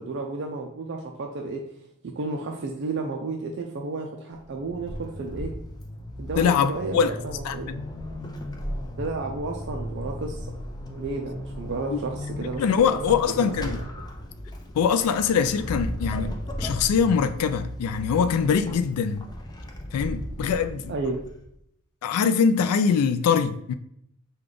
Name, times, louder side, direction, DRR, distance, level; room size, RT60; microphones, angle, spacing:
voice 1, 0.0-1.6 2.0-5.5 6.2-7.7 9.0-10.5 10.9-13.0 13.3-13.8 20.9-21.2, right 3 dB, 55° right, 0.4 m, -32 dB
Vehicle / Accelerating revving vroom / Squeak, 4.3-21.5, equal, 20° left, 0.4 m, -36 dB
voice 2, 6.4-7.1 7.4-7.8 11.9-12.0 12.6-13.8 14.8-19.2 19.9-20.9 22.0-23.7, left 6 dB, 90° left, 0.3 m, -23 dB
5.0 x 2.3 x 3.8 m
head